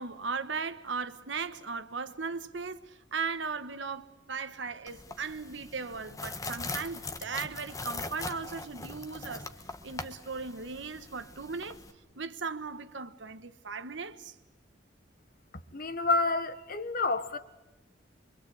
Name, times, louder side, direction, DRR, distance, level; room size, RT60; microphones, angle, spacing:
voice 1, 0.0-9.5 9.8-11.8 12.2-14.3, right 5 dB, 70° right, 1.3 m, -37 dB
sound 1, 4.9-11.9, left 3 dB, 20° left, 1.3 m, -41 dB
voice 2, 15.7-17.4, left 3 dB, 50° left, 1.4 m, -29 dB
25.0 x 24.5 x 8.5 m
head